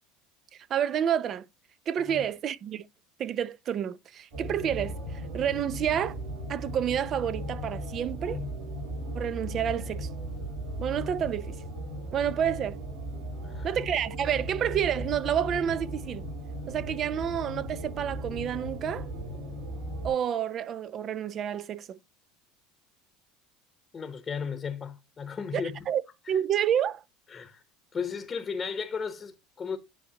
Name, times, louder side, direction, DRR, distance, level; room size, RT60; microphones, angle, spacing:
voice 1, 0.7-1.5 1.9-2.9 3.2-4.9 5.3-6.2 6.5-8.4 9.1-10.1 10.8-11.6 12.1-12.8 13.6-16.3 16.7-19.1 20.0-22.0 25.5-26.0 26.3-27.0, right 9 dB, 45° right, 0.6 m, -29 dB
sound 1, 4.3-20.1, right 1 dB, 65° right, 4.9 m, -37 dB
voice 2, 8.2-8.5 13.4-13.8 23.9-25.8 27.3-27.6 27.9-29.8, left 6 dB, 25° left, 1.0 m, -35 dB
10.0 x 4.4 x 2.9 m
supercardioid pair, 100°, 0 cm